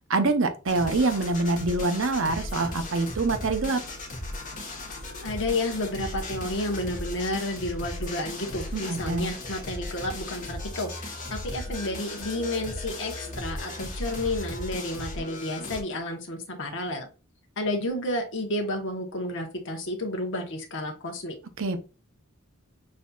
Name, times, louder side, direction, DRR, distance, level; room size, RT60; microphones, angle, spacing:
voice 1, 0.1-3.8 8.7-9.3 21.6-21.8, right 3 dB, 65° right, 8 dB, 0.7 m, -25 dB
sound 1, 0.7-15.8, left 1 dB, 40° left, 1.2 m, -36 dB
voice 2, 5.2-17.1 17.6-21.3, left 1 dB, 60° left, 3 dB, 1.0 m, -31 dB
6.3 x 2.7 x 2.3 m, 0.32 s
head